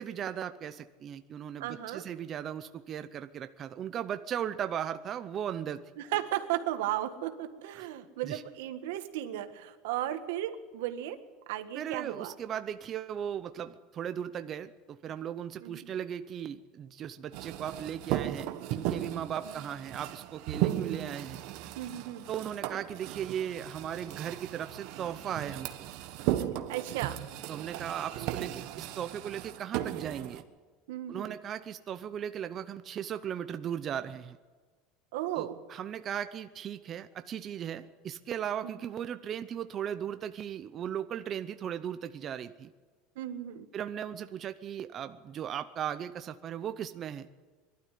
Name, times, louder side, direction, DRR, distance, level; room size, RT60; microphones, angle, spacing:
voice 1, 0.0-5.9 7.8-7.9 8.2-8.4 11.7-21.4 22.3-25.9 27.5-30.4 31.1-34.4 35.3-42.7 43.7-47.3, right 9 dB, 30° right, 9 dB, 0.6 m, -37 dB
voice 2, 1.6-2.0 6.0-11.2 11.5-12.3 15.6-15.9 21.7-22.3 26.7-27.2 30.9-31.4 35.1-35.6 38.6-38.8 43.1-43.7, right 13 dB, 90° right, 8 dB, 1.7 m, -35 dB
sound 1, 17.3-30.4, right 13 dB, 55° right, 1.4 m, -36 dB
22.5 x 12.5 x 9.9 m, 1.4 s
cardioid pair, 170°, 0 cm